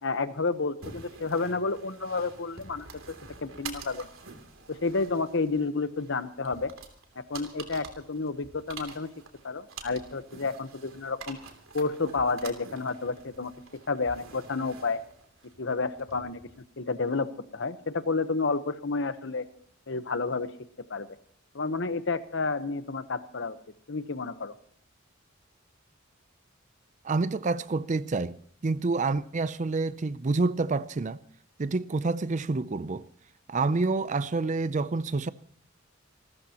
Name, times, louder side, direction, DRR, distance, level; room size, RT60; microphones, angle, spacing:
voice 1, 0.0-2.9 3.4-4.1 4.7-6.7 7.3-9.1 9.4-11.4 11.7-13.5 13.9-15.0 15.6-16.4 16.8-19.5 19.9-20.5 20.9-21.1 21.5-23.6 23.9-24.5, left 3 dB, 65° left, 1.0 m, -30 dB
sound 1, 0.8-16.6, right 5 dB, 85° right, 2.9 m, -47 dB
voice 2, 27.0-28.4 28.6-31.2 31.6-33.1 33.5-35.3, right 3 dB, 35° right, 0.5 m, -28 dB
28.0 x 13.5 x 2.9 m
head